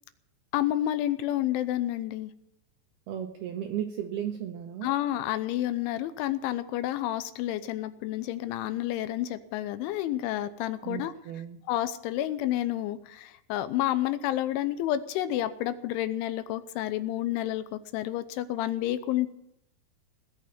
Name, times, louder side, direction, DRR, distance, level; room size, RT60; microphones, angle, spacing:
voice 1, 0.5-2.3 4.8-11.1 11.7-19.3, left 13 dB, 80° left, 12 dB, 3.1 m, -30 dB
voice 2, 3.1-4.9 10.8-11.6, right 10 dB, 85° right, 5 dB, 2.3 m, -35 dB
18.5 x 6.7 x 9.3 m, 0.81 s
omnidirectional pair, 5.7 m